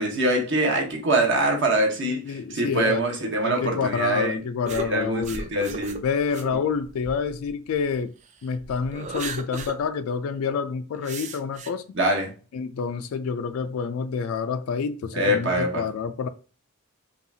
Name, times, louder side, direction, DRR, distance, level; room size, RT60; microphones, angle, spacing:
voice 1, 0.0-4.4 4.7-6.0 11.9-12.3 15.1-15.8, right 1 dB, 55° right, 1.1 m, -24 dB
voice 2, 2.0-3.0 3.4-5.4 6.0-8.1 8.4-12.0 12.5-16.3, left 6 dB, 75° left, 0.3 m, -28 dB
sound 1, 4.7-8.0 8.4-9.8 10.1-10.2 11.0-11.7, right 3 dB, 35° right, 0.4 m, -36 dB
5.4 x 2.4 x 2.7 m
head